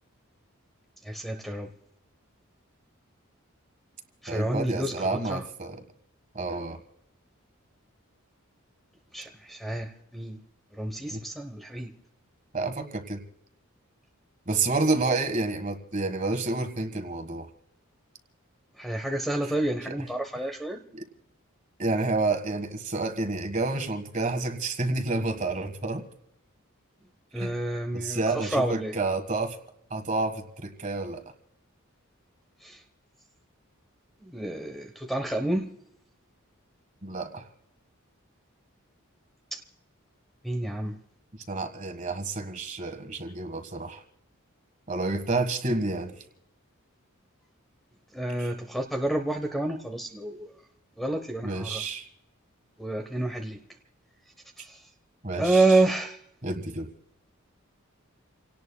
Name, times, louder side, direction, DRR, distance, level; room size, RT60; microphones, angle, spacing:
voice 1, 1.0-1.7 4.2-5.4 9.1-10.4 10.7-11.9 18.8-20.8 27.3-28.9 32.6-32.8 34.2-35.7 39.5-39.6 40.4-40.9 48.1-50.5 51.0-51.8 52.8-53.6 54.6-54.8 55.4-56.2, right 2 dB, ahead, 6 dB, 0.9 m, -29 dB
voice 2, 4.3-5.8 6.3-6.8 11.1-11.2 12.5-13.2 14.5-17.5 20.9-21.0 21.8-26.0 27.4-27.5 27.9-29.6 29.9-31.2 37.0-37.4 41.5-44.0 44.9-46.1 48.4-48.5 51.4-52.0 55.2-55.8 56.4-56.8, right 3 dB, 35° right, 7 dB, 1.6 m, -29 dB
29.5 x 18.0 x 2.3 m, 0.80 s
head